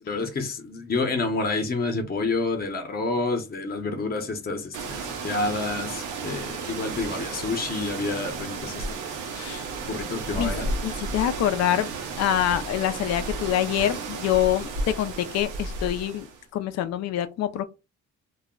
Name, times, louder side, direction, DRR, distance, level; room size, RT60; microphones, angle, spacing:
voice 1, 0.0-9.2 9.7-10.7, left 3 dB, 30° left, 0.7 m, -29 dB
sound 1, 4.7-16.4, right 3 dB, 85° right, 0.7 m, -33 dB
voice 2, 9.3-9.6 10.3-10.5 10.8-11.9 12.2-16.3 16.5-17.6, left 11 dB, 60° left, 0.4 m, -25 dB
2.3 x 2.1 x 3.6 m
cardioid pair, 90°, 30 cm